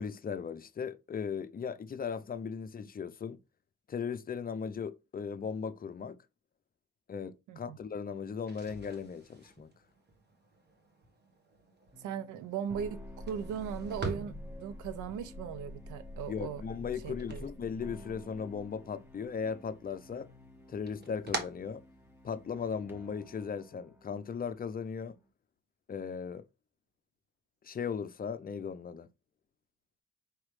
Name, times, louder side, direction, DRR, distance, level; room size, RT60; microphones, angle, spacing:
voice 1, 0.0-3.4 3.9-6.2 7.1-9.7 16.3-20.3 20.7-21.8 22.2-25.2 25.9-26.4 27.6-29.1, left 6 dB, 30° left, 0.5 m, -37 dB
sound 1, 8.3-18.4 18.7-19.5 19.9-22.5, right 2 dB, 35° right, 1.2 m, -45 dB
sound 2, 11.9-25.2, left 1 dB, 5° right, 0.9 m, -49 dB
voice 2, 12.0-13.0 13.3-16.6 17.0-17.5, right 8 dB, 80° right, 0.6 m, -38 dB
4.8 x 3.1 x 3.1 m
cardioid pair, 90°, 30 cm